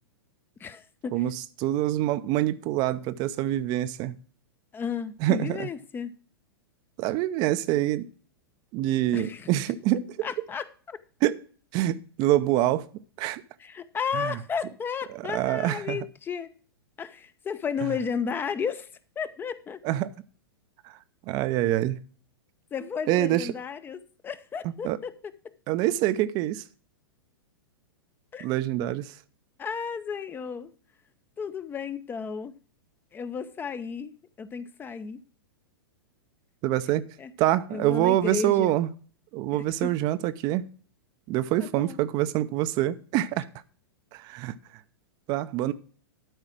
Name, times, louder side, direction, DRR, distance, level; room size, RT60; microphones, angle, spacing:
voice 1, 0.6-1.3 4.7-6.1 9.1-9.5 10.2-11.0 13.6-16.5 17.0-18.9 19.2-19.8 22.7-25.3 28.3-28.5 29.6-30.7 31.4-32.5 33.1-35.2 37.2-37.3 37.7-38.7 39.5-39.9 41.6-42.0, left 6 dB, 15° left, 0.6 m, -33 dB
voice 2, 1.1-4.2 5.2-5.7 7.0-8.1 8.7-10.3 11.2-11.4 11.7-12.9 13.2-13.4 14.1-14.4 15.1-16.0 19.8-20.1 20.8-21.0 21.3-22.0 23.1-23.5 24.8-25.0 25.7-26.6 28.4-29.1 36.6-37.1 37.4-38.9 39.3-40.6 41.3-43.5 44.1-44.5 45.3-45.7, right 14 dB, 35° right, 0.5 m, -25 dB
12.5 x 4.8 x 6.0 m
figure-of-eight pair, 100°, 13 cm